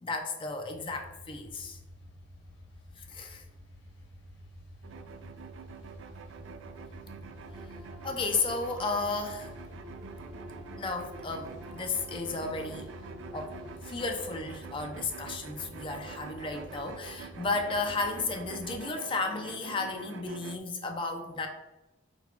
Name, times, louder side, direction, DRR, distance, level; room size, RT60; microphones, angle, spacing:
voice 1, 0.0-1.8 3.0-3.4 8.0-9.5 10.8-12.9 13.3-13.5 13.8-21.5, left 3 dB, 25° left, 4 dB, 0.4 m, -33 dB
sound 1, 0.7-18.7, equal, 75° left, 1.0 m, -50 dB
voice 2, 4.6-5.0, right 2 dB, 60° right, 0 dB, 1.0 m, -74 dB
sound 2, 4.8-20.6, right 6 dB, 85° right, 0.3 m, -46 dB
sound 3, 6.7-13.7, left 2 dB, 5° right, 0.7 m, -51 dB
4.0 x 2.2 x 4.3 m, 1.0 s
head